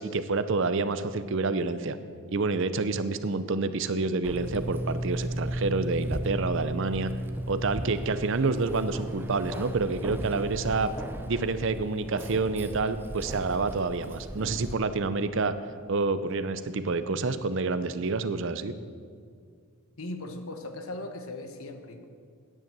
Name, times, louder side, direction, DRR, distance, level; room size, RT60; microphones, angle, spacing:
voice 1, 0.0-2.0 2.3-7.1 7.5-10.9 11.3-15.5 15.9-18.7, right 3 dB, 60° right, 12 dB, 0.6 m, -28 dB
Keys jangling, 4.2-14.7, right 1 dB, 10° right, 0.4 m, -40 dB
sound 1, 4.3-16.6 16.8-17.1 18.7-18.8, right 1 dB, 30° right, 1.0 m, -38 dB
voice 2, 20.0-22.1, left 2 dB, 75° left, 6 dB, 1.2 m, -38 dB
9.9 x 8.0 x 7.5 m, 2.1 s
head